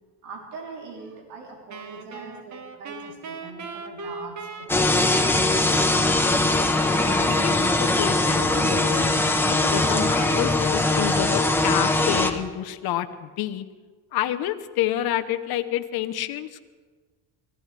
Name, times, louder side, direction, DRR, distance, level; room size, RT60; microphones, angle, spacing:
voice 1, 0.2-5.6, right 3 dB, 75° right, 0 dB, 3.5 m, -42 dB
Wind instrument woodwind instrument, 1.7-8.3, right 4 dB, 45° right, 1.4 m, -39 dB
sound 1, 4.7-12.3, left 2 dB, 5° left, 1.2 m, -21 dB
voice 2, 6.6-13.6 14.1-16.6, left 12 dB, 65° left, 8 dB, 1.0 m, -29 dB
24.0 x 15.0 x 3.4 m, 1.4 s
cardioid pair, 90°, 40 cm